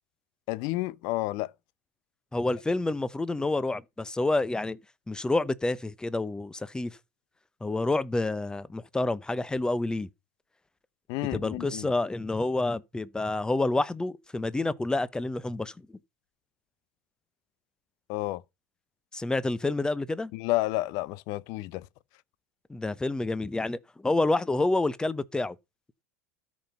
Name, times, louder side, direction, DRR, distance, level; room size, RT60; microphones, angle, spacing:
voice 1, 0.5-1.5 11.1-11.9 18.1-18.4 20.3-21.8, left 19 dB, 55° left, 0.7 m, -30 dB
voice 2, 2.3-4.8 5.1-7.0 7.6-10.1 11.3-15.7 19.1-20.3 22.7-25.6, left 2 dB, 10° left, 0.8 m, -28 dB
13.0 x 5.4 x 5.6 m
hypercardioid pair, 85°, 8 cm